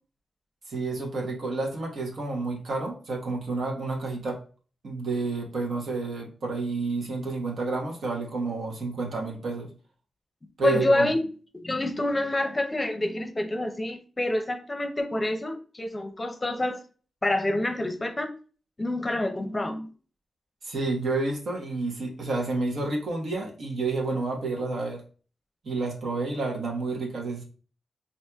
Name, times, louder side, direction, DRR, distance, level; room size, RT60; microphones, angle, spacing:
voice 1, 0.7-4.4 4.8-9.7 10.6-11.1 20.6-25.0 25.6-27.4, right 3 dB, 70° right, 1.0 m, -30 dB
voice 2, 10.6-11.3 11.5-16.8 17.2-18.3 18.8-19.9, left 1 dB, 25° left, 0.6 m, -27 dB
4.2 x 2.6 x 2.3 m
cardioid pair, 65°, 0 cm